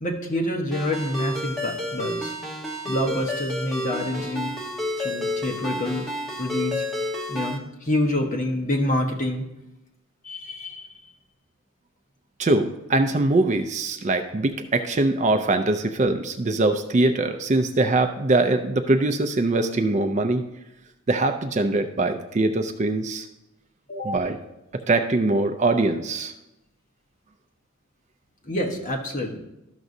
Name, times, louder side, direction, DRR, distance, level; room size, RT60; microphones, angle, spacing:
voice 1, 0.0-2.3 2.8-4.5 5.0-6.0 6.4-6.9 7.3-9.4 10.2-10.9 23.9-24.1 28.4-29.4, left 1 dB, 35° left, 0 dB, 1.1 m, -27 dB
Ringtone, 0.7-7.6, left 1 dB, ahead, 1.2 m, -30 dB
voice 2, 12.4-20.4 21.1-23.3 23.9-24.4 24.7-26.3, right 2 dB, 35° right, 8 dB, 0.4 m, -22 dB
12.5 x 6.1 x 2.7 m, 0.92 s
head